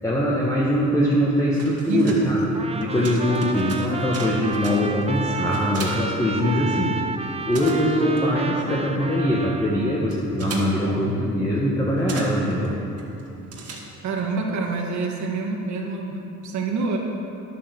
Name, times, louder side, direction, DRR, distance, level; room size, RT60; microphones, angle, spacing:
voice 1, 0.0-2.4 2.7-6.9 7.4-12.8, equal, 10° left, -6 dB, 1.7 m, -22 dB
sound 1, 1.3-6.9 7.2-14.3, right 2 dB, 50° right, 2.0 m, -39 dB
voice 2, 1.9-2.6 10.8-11.1 14.0-17.0, right 3 dB, 70° right, 0 dB, 1.7 m, -27 dB
Trumpet, 2.5-10.0, right 4 dB, 20° right, 0.7 m, -31 dB
11.0 x 7.0 x 7.0 m, 2.8 s
cardioid pair, 90°, 30 cm